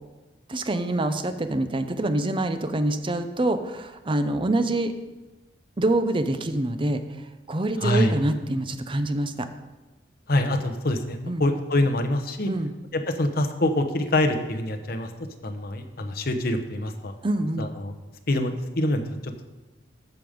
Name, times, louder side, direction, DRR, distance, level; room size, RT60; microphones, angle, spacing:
voice 1, 0.5-4.9 5.8-9.5 11.3-11.4 12.5-12.7 17.2-17.7, right 1 dB, 30° right, 9 dB, 0.6 m, -26 dB
voice 2, 7.8-8.1 10.3-12.5 12.9-15.1 15.4-17.1 17.6-17.9 18.3-19.4, left 1 dB, 55° left, 6 dB, 0.9 m, -25 dB
14.0 x 5.2 x 5.1 m, 1.1 s
head